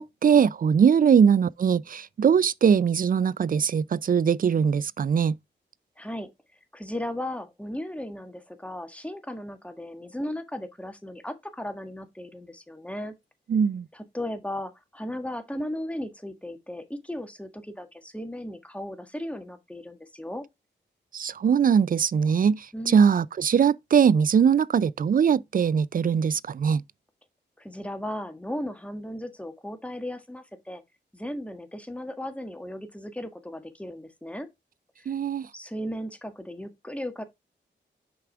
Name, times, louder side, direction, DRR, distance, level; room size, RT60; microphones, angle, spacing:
voice 1, 0.0-5.4 13.5-13.9 21.1-26.8 35.1-35.5, right 7 dB, 45° right, 0.4 m, -21 dB
voice 2, 6.0-6.3 6.7-13.1 13.9-20.4 22.7-23.1 27.6-30.8 31.1-34.5 35.0-35.1 35.5-37.2, left 1 dB, 5° left, 1.5 m, -36 dB
6.8 x 4.9 x 3.4 m
cardioid pair, 55°, 19 cm